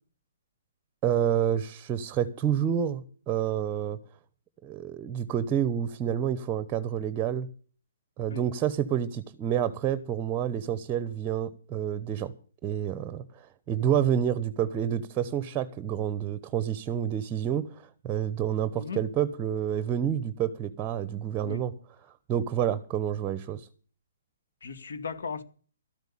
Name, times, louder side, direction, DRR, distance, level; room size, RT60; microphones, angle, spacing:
voice 1, 1.0-4.0 4.6-7.5 8.2-12.3 12.6-21.7 22.0-23.7, right 9 dB, 20° right, 0.9 m, -29 dB
voice 2, 24.6-25.4, left 6 dB, 80° left, 2.2 m, -37 dB
13.0 x 8.1 x 8.6 m
hypercardioid pair, 155°, 0 cm